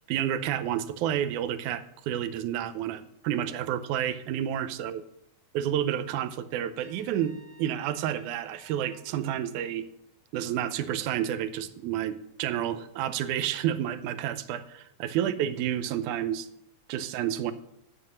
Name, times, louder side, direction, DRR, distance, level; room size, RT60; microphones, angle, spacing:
voice 1, 0.1-5.0 5.5-9.9 10.3-16.5 16.9-17.5, right 10 dB, 80° right, 13 dB, 2.0 m, -30 dB
Trumpet, 6.8-9.1, equal, 40° right, 2.6 m, -57 dB
8.2 x 7.7 x 6.3 m, 0.77 s
omnidirectional pair, 3.6 m